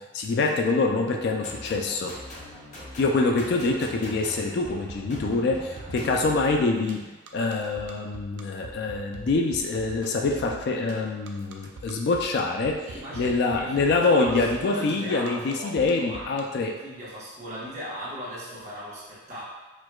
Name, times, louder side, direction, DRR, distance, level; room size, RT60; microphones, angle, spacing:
voice 1, 0.0-2.2 3.0-7.1 7.3-12.9 13.2-16.7, left 3 dB, 60° left, 2 dB, 0.3 m, -25 dB
sound 1, 1.3-6.5, left 1 dB, 40° left, 0.7 m, -42 dB
sound 2, 4.6-16.4, right 3 dB, 65° right, 0.4 m, -43 dB
voice 2, 5.5-6.2 12.9-19.4, equal, 35° right, -9 dB, 1.1 m, -39 dB
4.4 x 2.3 x 2.2 m, 1.2 s
head